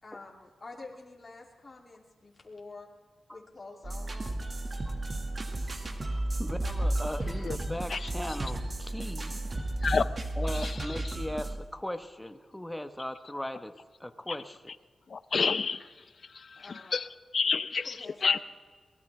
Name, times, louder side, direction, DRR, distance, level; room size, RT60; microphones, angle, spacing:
voice 1, 0.0-2.9 3.3-4.5 16.5-17.0 17.8-18.4, left 3 dB, 35° left, -1 dB, 2.9 m, -47 dB
sound 1, 3.8-11.6, right 1 dB, 40° right, 1.8 m, -33 dB
voice 2, 6.0-9.3 10.4-14.7, left 1 dB, 10° left, 8 dB, 1.2 m, -38 dB
voice 3, 15.1-15.8 16.6-17.1 17.3-18.4, left 5 dB, 60° left, 14 dB, 0.6 m, -28 dB
22.5 x 18.5 x 3.4 m, 1.5 s
cardioid pair, 75°, 0 cm